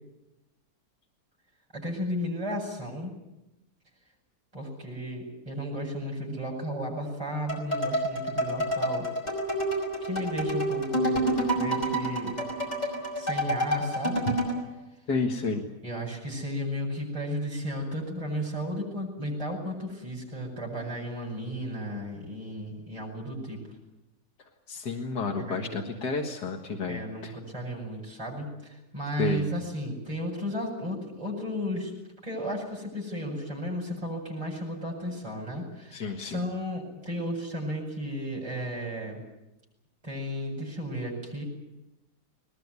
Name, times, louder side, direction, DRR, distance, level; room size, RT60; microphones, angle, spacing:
voice 1, 1.7-3.1 4.5-9.1 10.0-12.4 13.2-14.3 15.8-23.6 25.3-25.8 26.9-31.9 32.2-39.2 40.0-41.4, equal, 20° right, -2 dB, 7.9 m, -34 dB
sound 1, 7.5-14.6, right 1 dB, 25° left, 5.6 m, -28 dB
voice 2, 15.1-15.7 24.7-27.3 29.2-29.5 35.9-36.5, left 3 dB, 80° left, 2 dB, 2.4 m, -31 dB
21.5 x 20.5 x 9.7 m, 0.96 s
omnidirectional pair, 1.7 m